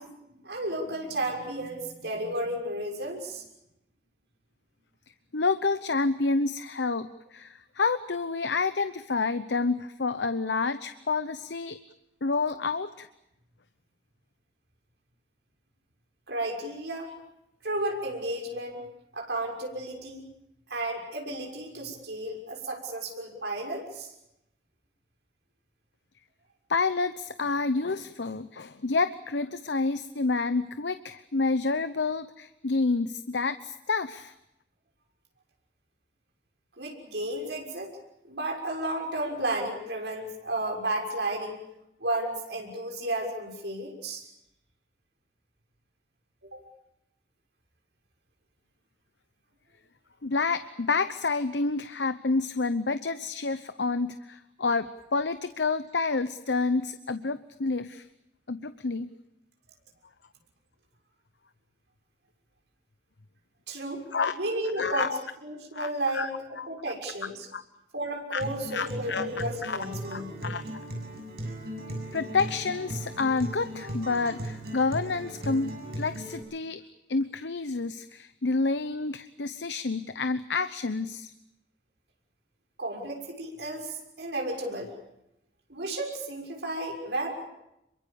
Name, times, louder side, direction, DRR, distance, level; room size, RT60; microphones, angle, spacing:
voice 1, 0.3-3.4 16.3-17.1 17.6-18.8 19.1-20.3 20.7-24.1 36.8-37.9 38.2-41.6 42.0-44.3 46.5-46.6 63.7-64.0 64.3-65.1 65.4-66.3 66.7-67.5 67.9-70.5 82.8-84.9 85.7-87.4, right 1 dB, 80° right, 1 dB, 6.4 m, -33 dB
voice 2, 5.3-11.8 12.2-13.1 26.7-34.3 50.2-58.1 58.5-59.1 64.1-64.3 64.8-65.2 65.7-66.3 66.6-66.7 67.5-67.6 68.3-68.4 68.7-69.2 69.6-69.8 70.1-70.6 72.1-75.7 76.0-76.8 77.1-81.3, left 4 dB, 90° left, 12 dB, 0.9 m, -29 dB
Acoustic guitar, 68.4-76.4, right 1 dB, 60° right, 7.1 m, -37 dB
27.0 x 23.5 x 7.0 m, 0.84 s
head